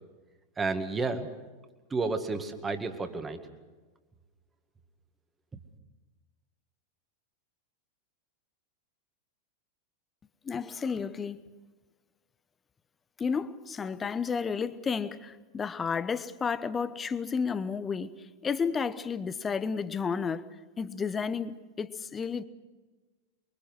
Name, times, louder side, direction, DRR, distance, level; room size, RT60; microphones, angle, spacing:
voice 1, 0.6-1.3 1.9-3.4, right 3 dB, 15° right, 2.0 m, -31 dB
voice 2, 10.4-11.4 13.2-20.5 20.8-22.4, left 5 dB, 20° left, 1.0 m, -32 dB
24.5 x 23.5 x 6.3 m
figure-of-eight pair, 90°, 0 cm